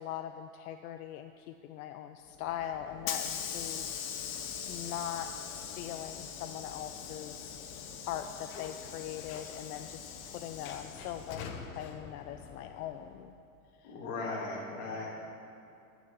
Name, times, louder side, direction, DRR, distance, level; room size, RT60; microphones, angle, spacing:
voice 1, 0.0-4.4 4.7-7.4 8.1-11.5 11.7-13.3 13.8-13.9, left 10 dB, 80° left, 8 dB, 0.6 m, -41 dB
Hiss / Sliding door, 2.3-13.2, left 7 dB, 30° left, 0.6 m, -42 dB
voice 2, 13.8-15.1, left 3 dB, 45° left, -3 dB, 2.7 m, -37 dB
11.0 x 6.1 x 7.3 m, 2.7 s
supercardioid pair, 155°, 44 cm